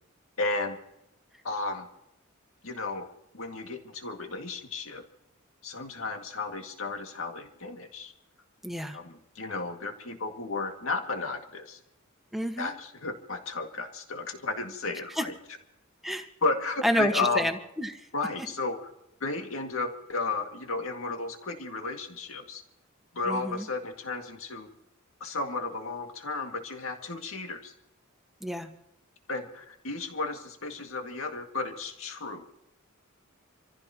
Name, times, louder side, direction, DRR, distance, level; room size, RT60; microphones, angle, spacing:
voice 1, 0.4-0.8 1.4-1.9 2.6-3.1 3.3-5.0 5.6-8.1 8.9-11.8 12.6-15.4 16.4-17.5 18.1-18.9 19.2-22.6 23.1-24.7 25.2-27.7 29.3-32.4, left 3 dB, 70° left, 4 dB, 2.2 m, -33 dB
voice 2, 8.6-9.0 12.3-12.7 15.2-15.3 16.0-16.3 16.8-18.0 23.3-23.6 28.4-28.7, equal, ahead, 5 dB, 1.4 m, -29 dB
27.0 x 15.0 x 3.0 m, 0.83 s
head